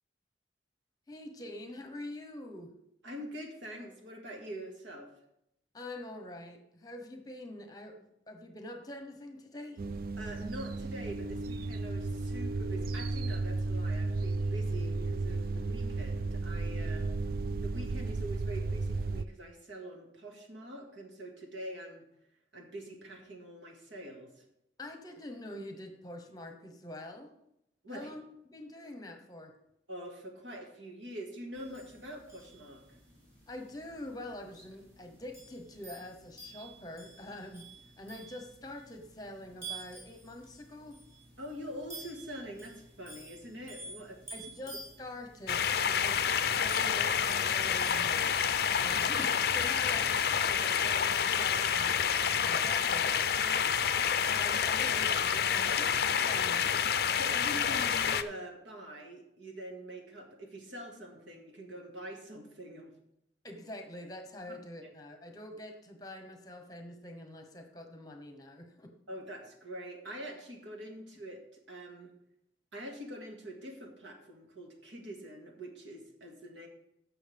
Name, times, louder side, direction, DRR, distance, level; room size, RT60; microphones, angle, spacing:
voice 1, 1.1-2.7 5.7-9.8 24.8-27.3 27.9-28.2 28.5-29.5 33.5-37.6 38.0-41.0 44.3-54.0 54.3-56.7 63.4-68.9, left 1 dB, 20° left, 5 dB, 1.0 m, -45 dB
voice 2, 3.0-5.1 10.2-17.1 17.6-22.0 22.5-24.4 27.8-28.1 29.9-33.0 41.4-44.2 57.2-62.9 64.8-64.9 69.1-72.1 72.7-76.7, equal, 90° right, 2 dB, 2.0 m, -44 dB
sound 1, 9.8-19.2, right 3 dB, 50° right, 0.3 m, -34 dB
sound 2, 31.5-49.1, right 3 dB, 15° right, 4.1 m, -51 dB
sound 3, 45.5-58.2, left 7 dB, 55° left, 0.4 m, -28 dB
15.0 x 6.2 x 3.5 m, 0.79 s
head